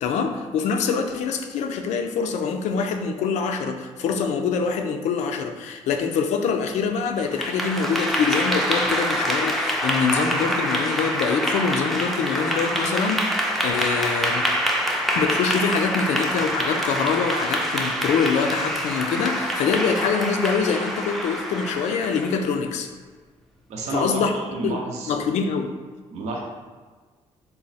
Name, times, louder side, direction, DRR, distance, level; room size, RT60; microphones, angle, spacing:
voice 1, 0.0-14.5 15.1-22.9 23.9-24.3 24.6-24.8 25.1-25.7, left 5 dB, 85° left, 6 dB, 0.4 m, -24 dB
Clapping / Applause, 7.2-22.5, equal, ahead, 0.4 m, -25 dB
voice 2, 23.7-25.1 26.1-26.4, right 2 dB, 80° right, -1 dB, 0.6 m, -30 dB
3.5 x 2.1 x 4.0 m, 1.4 s
cardioid pair, 125°, 12 cm